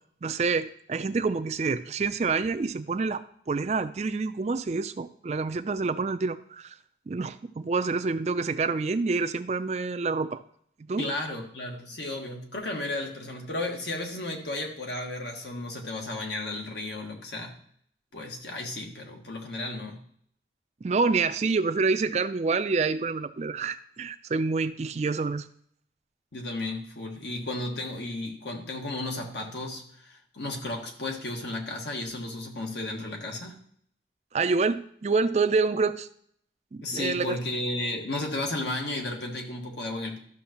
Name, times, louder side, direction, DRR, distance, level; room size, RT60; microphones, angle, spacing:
voice 1, 0.2-6.8 7.1-10.4 10.8-11.0 20.8-25.5 34.3-36.1 36.7-37.4, right 4 dB, 40° right, 11 dB, 0.4 m, -27 dB
voice 2, 11.0-17.5 18.1-20.0 26.3-33.6 36.8-40.2, left 2 dB, 75° left, 1 dB, 1.6 m, -34 dB
13.0 x 6.3 x 2.9 m, 0.65 s
head